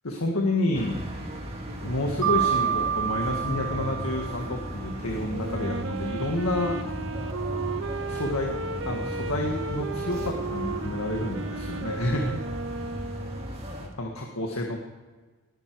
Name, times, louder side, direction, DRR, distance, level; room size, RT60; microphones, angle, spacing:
voice 1, 0.0-1.0 1.8-6.8 8.1-8.5 8.9-12.4 14.0-14.8, left 1 dB, 80° left, 1 dB, 1.8 m, -29 dB
sound 1, 0.7-13.9, equal, 25° right, 2.0 m, -36 dB
Mallet percussion, 2.2-5.0, right 9 dB, 75° right, 1.6 m, -28 dB
Wind instrument woodwind instrument, 5.3-13.6, right 3 dB, 60° right, 0.7 m, -35 dB
19.5 x 11.0 x 4.7 m, 1.3 s
head